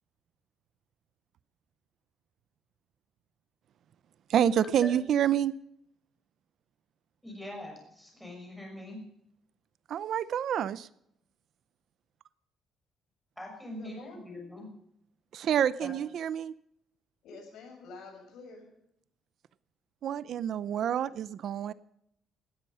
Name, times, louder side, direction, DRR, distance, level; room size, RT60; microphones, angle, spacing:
voice 1, 4.3-5.5 9.9-10.9 15.3-16.5 20.0-21.7, right 9 dB, 50° right, 0.5 m, -28 dB
voice 2, 7.2-9.0 13.4-14.7 15.8-15.9, left 1 dB, ahead, 6.2 m, -42 dB
voice 3, 13.7-14.6 17.2-18.7, left 3 dB, 70° left, 7.0 m, -48 dB
18.5 x 13.5 x 5.5 m
cardioid pair, 170°, 0 cm